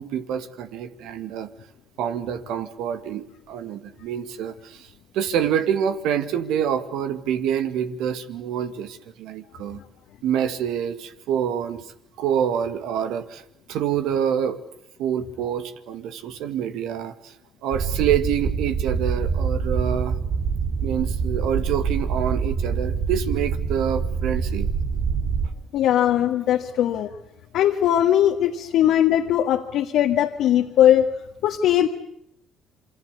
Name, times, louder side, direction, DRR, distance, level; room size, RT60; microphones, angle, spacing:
voice 1, 0.0-1.5 2.0-4.9 5.1-9.8 10.2-11.9 12.2-13.4 13.7-14.6 15.0-17.3 17.6-20.2 20.8-24.7, right 9 dB, 75° right, 10 dB, 2.1 m, -26 dB
sound 1, 17.7-25.5, right 5 dB, 60° right, 2.6 m, -25 dB
voice 2, 25.7-27.1 27.5-31.1 31.4-31.9, left 11 dB, 70° left, 2 dB, 1.8 m, -19 dB
27.5 x 24.5 x 8.4 m, 0.77 s
hypercardioid pair, 55°, 0 cm